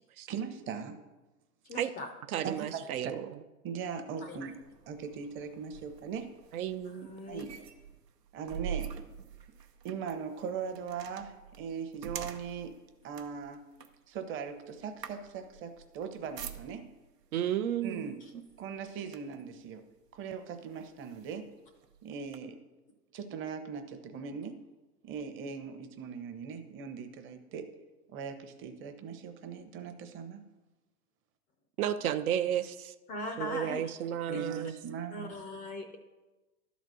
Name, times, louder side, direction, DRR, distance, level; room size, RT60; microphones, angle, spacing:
voice 1, 0.3-1.0 2.4-3.1 3.6-4.5 4.9-6.3 7.3-7.5 8.3-8.9 9.8-12.8 13.0-13.6 14.1-16.9 17.8-18.2 18.6-19.9 20.1-21.5 22.0-22.6 23.1-24.6 25.0-27.7 28.1-30.4 34.3-35.4, right 6 dB, 25° right, 7 dB, 0.8 m, -40 dB
voice 2, 1.7-2.1 4.3-4.4 6.9-7.5 33.1-33.9 34.3-34.4 35.1-36.0, left 2 dB, 20° left, 5 dB, 0.4 m, -40 dB
voice 3, 2.3-3.3 6.5-7.1 17.3-18.1 31.8-32.9 33.4-34.7, right 10 dB, 65° right, 11 dB, 0.6 m, -32 dB
sound 1, 4.2-17.1 17.9-18.1 18.5-19.5 20.2-20.3 20.7-22.4, right 8 dB, 90° right, 0.9 m, -45 dB
11.5 x 4.1 x 6.3 m, 1.1 s
hypercardioid pair, 120°, 47 cm